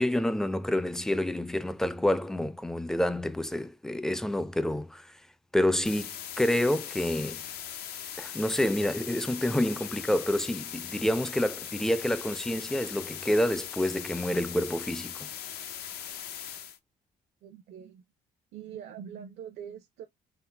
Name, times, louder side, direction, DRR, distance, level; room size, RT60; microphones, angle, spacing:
voice 1, 0.0-5.1 5.5-6.1 6.4-7.4 8.2-15.3, left 1 dB, 5° left, 0.3 m, -28 dB
sound 1, 5.8-16.8, left 9 dB, 70° left, 0.6 m, -40 dB
voice 2, 17.4-18.0 18.5-20.0, right 8 dB, 75° right, 0.7 m, -43 dB
3.7 x 2.1 x 3.2 m
cardioid pair, 110°, 17 cm